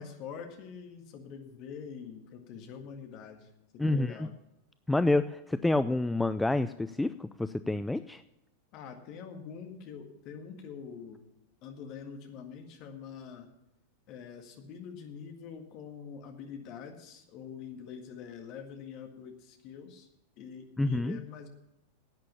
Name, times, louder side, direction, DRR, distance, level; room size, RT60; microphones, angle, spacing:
voice 1, 0.0-4.3 8.7-11.2 11.6-13.5 14.1-20.1 20.4-21.5, left 6 dB, 40° left, 4 dB, 1.9 m, -45 dB
voice 2, 3.8-4.3 4.9-8.2 20.8-21.2, left 2 dB, 5° left, 12 dB, 0.4 m, -28 dB
11.0 x 8.9 x 7.1 m, 0.87 s
figure-of-eight pair, 90°, 0 cm